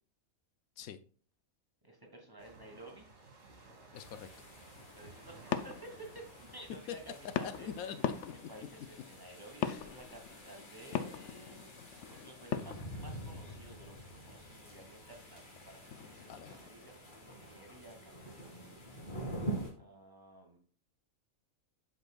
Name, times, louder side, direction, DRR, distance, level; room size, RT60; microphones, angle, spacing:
voice 1, 1.8-3.1 4.9-6.2 6.5-7.7 8.5-18.8 19.7-20.6, right 1 dB, 15° right, 1 dB, 1.5 m, -53 dB
sound 1, 2.4-8.2, right 3 dB, 55° right, 2.1 m, -57 dB
voice 2, 3.9-4.3 6.9-7.0 7.4-8.5 9.7-9.8 16.3-16.5, left 8 dB, 90° left, 12 dB, 1.1 m, -44 dB
sound 2, 3.9-19.7, right 1 dB, 35° left, 1.9 m, -47 dB
sound 3, 4.7-16.9, left 8 dB, 70° left, 0.8 m, -42 dB
7.8 x 6.5 x 2.3 m, 0.43 s
omnidirectional pair, 1.4 m